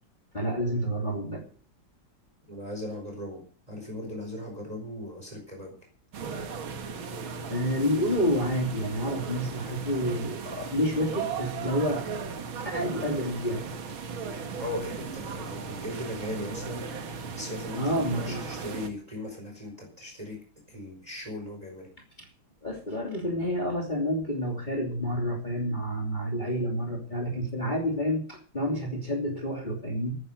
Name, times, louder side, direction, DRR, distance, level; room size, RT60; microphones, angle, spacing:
voice 1, 0.3-1.4 7.5-12.0 12.7-13.6 17.8-18.4 22.6-30.2, equal, 20° left, 0 dB, 3.1 m, -29 dB
voice 2, 2.5-3.4 3.7-5.8 14.6-16.8 17.3-20.4 20.7-21.9, left 1 dB, 15° right, 1 dB, 4.8 m, -38 dB
sound 1, 6.1-18.9, right 5 dB, 65° right, 2.3 m, -37 dB
13.5 x 10.0 x 6.6 m, 0.42 s
omnidirectional pair, 2.4 m